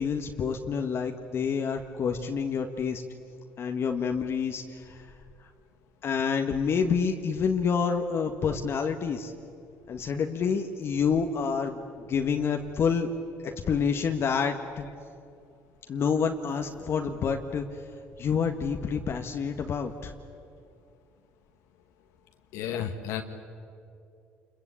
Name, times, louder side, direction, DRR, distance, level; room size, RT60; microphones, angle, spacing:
voice 1, 0.0-3.0 3.6-5.1 6.0-9.3 9.9-11.8 12.1-13.1 13.4-14.9 15.9-17.7 18.2-20.1, left 6 dB, 50° left, 4 dB, 1.7 m, -28 dB
voice 2, 22.5-23.2, left 9 dB, 80° left, 5 dB, 1.9 m, -32 dB
28.0 x 22.0 x 8.6 m, 2.5 s
supercardioid pair, 75°, 5 cm